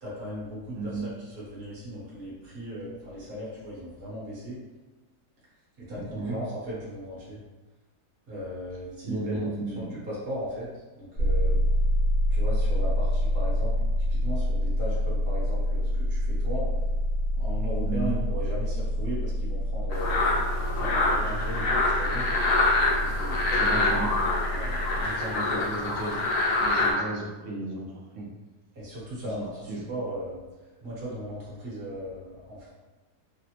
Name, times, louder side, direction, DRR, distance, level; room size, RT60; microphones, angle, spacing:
voice 1, 0.0-4.6 5.8-7.4 8.3-9.5 9.7-10.7 10.9-11.6 12.3-13.8 14.1-16.7 17.3-20.2 20.7-22.3 23.0-23.6 24.5-25.6 28.7-30.4 30.8-32.7, equal, 45° right, -7 dB, 1.2 m, -37 dB
voice 2, 5.9-6.4 9.0-9.9 17.8-18.2 23.6-24.1 25.3-26.2 26.6-28.3 29.3-29.8, right 2 dB, 65° right, -2 dB, 0.7 m, -34 dB
sound 1, 11.1-25.0, equal, 65° left, 1.0 m, -27 dB
sound 2, 19.9-26.9, left 2 dB, 85° left, 1.2 m, -26 dB
3.2 x 2.0 x 2.8 m, 1.2 s
omnidirectional pair, 1.7 m